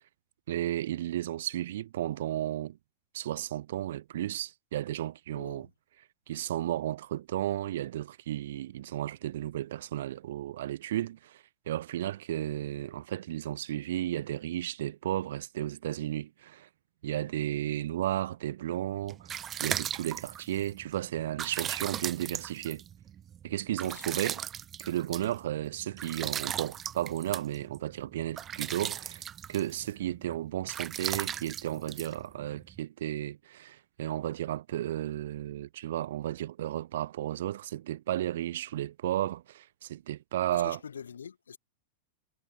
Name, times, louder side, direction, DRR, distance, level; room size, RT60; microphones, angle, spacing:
voice 1, 0.5-2.8 3.1-5.7 6.3-16.7 17.0-22.8 23.4-24.4 24.8-29.2 29.5-40.8, right 13 dB, 60° right, 0.5 m, -33 dB
voice 2, 5.3-5.7 23.8-24.2 40.5-41.6, left 7 dB, 70° left, 1.6 m, -44 dB
sound 1, 18.8-32.8, right 9 dB, 25° right, 1.3 m, -38 dB
figure-of-eight pair, 90°, 0 cm